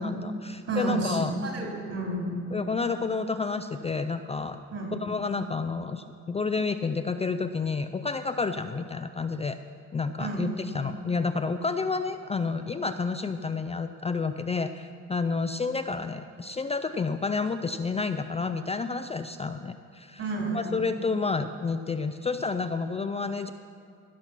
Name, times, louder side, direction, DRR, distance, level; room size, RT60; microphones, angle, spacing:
voice 1, 0.0-1.4 2.5-4.6 5.0-9.6 9.9-20.2 20.5-23.5, left 4 dB, 20° left, 9 dB, 0.4 m, -30 dB
voice 2, 0.7-2.4 4.7-4.9 10.2-10.4 20.2-20.7, right 2 dB, 55° right, 0 dB, 3.1 m, -30 dB
16.0 x 5.8 x 5.9 m, 2.5 s
cardioid pair, 90°, 30 cm